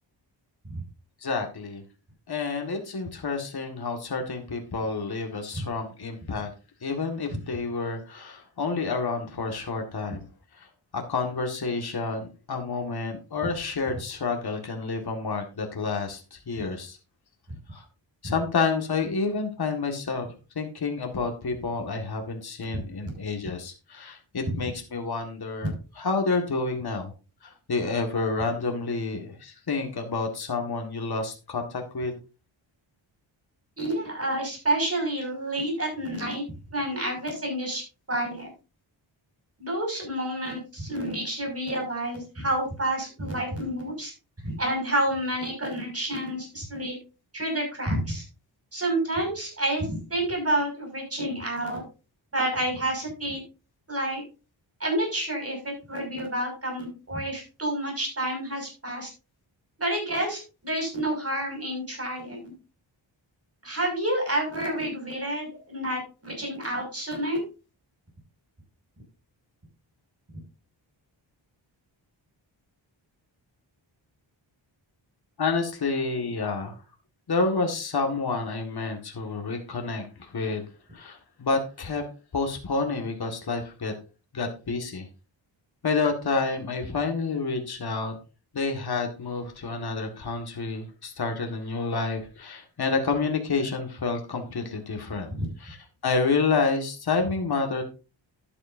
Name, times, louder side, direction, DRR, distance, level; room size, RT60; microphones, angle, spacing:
voice 1, 1.2-1.8 2.3-6.5 6.8-10.2 10.5-10.7 10.9-17.0 17.7-17.8 18.2-27.1 27.4-32.2 75.4-76.8 77.3-80.6 80.9-82.0 82.3-83.9 84.3-85.1 85.8-88.2 88.5-95.3 95.6-95.8 96.0-97.8, left 4 dB, 55° left, 3 dB, 1.9 m, -29 dB
voice 2, 33.8-36.4 36.7-37.8 38.1-38.5 39.6-44.1 44.4-47.0 47.3-48.2 48.7-51.8 52.3-53.4 53.9-54.2 54.8-59.1 59.8-62.5 63.6-67.4 95.3-95.5, right 1 dB, 30° right, 1 dB, 6.0 m, -29 dB
11.5 x 9.8 x 2.7 m, 0.32 s
wide cardioid pair, 95°, 47 cm